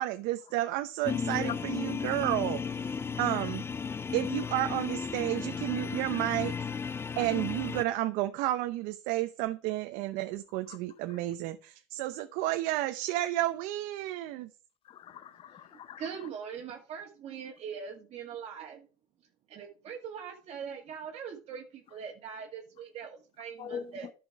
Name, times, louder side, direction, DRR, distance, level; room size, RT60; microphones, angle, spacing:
voice 1, 0.0-2.6 3.2-3.6 4.1-6.5 7.2-14.5, right 15 dB, 75° right, 0.8 m, -31 dB
sound 1, 1.0-7.8, left 5 dB, 15° left, 0.4 m, -34 dB
voice 2, 14.8-16.0 23.6-24.1, left 8 dB, 40° left, 0.8 m, -42 dB
voice 3, 16.0-18.9 19.5-24.1, right 7 dB, 50° right, 1.8 m, -41 dB
11.0 x 6.0 x 4.7 m
supercardioid pair, 115°, 14 cm